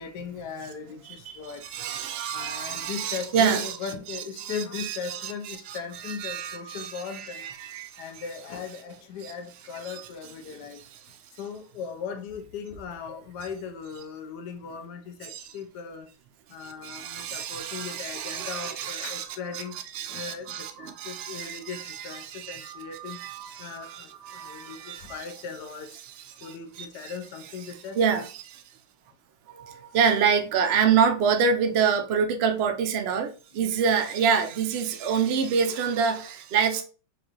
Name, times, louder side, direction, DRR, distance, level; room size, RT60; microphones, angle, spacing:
voice 1, 0.0-1.8 2.3-7.5 8.0-10.8 11.4-16.1 16.5-23.2 23.6-26.0 26.4-28.0 33.6-33.8, left 6 dB, 80° left, 1.2 m, -38 dB
voice 2, 1.6-3.8 4.4-8.1 9.2-9.3 9.8-10.0 15.3-15.4 16.6-19.3 19.5-19.6 19.9-25.2 26.4-27.1 28.0-28.6 29.5-36.8, right 6 dB, 75° right, 0.5 m, -27 dB
4.5 x 2.5 x 2.8 m
omnidirectional pair, 1.7 m